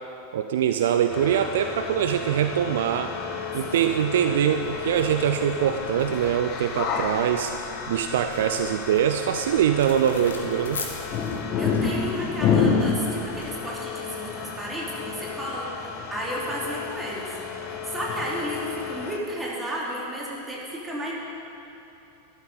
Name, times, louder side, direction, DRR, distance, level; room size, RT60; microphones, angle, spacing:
voice 1, 0.3-3.1 3.5-7.5 7.9-10.8, right 9 dB, 60° right, 8 dB, 0.4 m, -23 dB
sound 1, 1.1-19.2, left 5 dB, 35° left, 1.3 m, -30 dB
voice 2, 3.5-3.9 11.6-17.4 17.7-21.1, equal, 10° right, -5 dB, 3.0 m, -33 dB
sound 2, 4.6-13.5, left 5 dB, 65° left, 1.5 m, -42 dB
12.5 x 12.5 x 5.1 m, 3.0 s
figure-of-eight pair, 90°, 0 cm